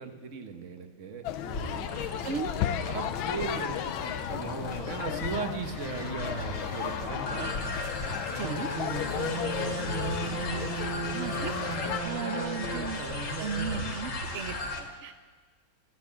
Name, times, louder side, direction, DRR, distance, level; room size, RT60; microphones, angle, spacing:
voice 1, 0.0-1.9 2.8-7.5 8.4-14.1, right 5 dB, 45° right, 6 dB, 1.3 m, -37 dB
sound 1, 1.2-12.0, left 10 dB, 75° left, 1.4 m, -35 dB
sound 2, 1.5-14.8, left 2 dB, 55° left, 2.5 m, -36 dB
voice 2, 2.2-2.5 8.3-8.7 11.1-11.5 11.8-13.0 13.4-15.1, right 6 dB, 85° right, 9 dB, 0.6 m, -36 dB
15.0 x 10.5 x 8.7 m, 1.4 s
omnidirectional pair, 2.3 m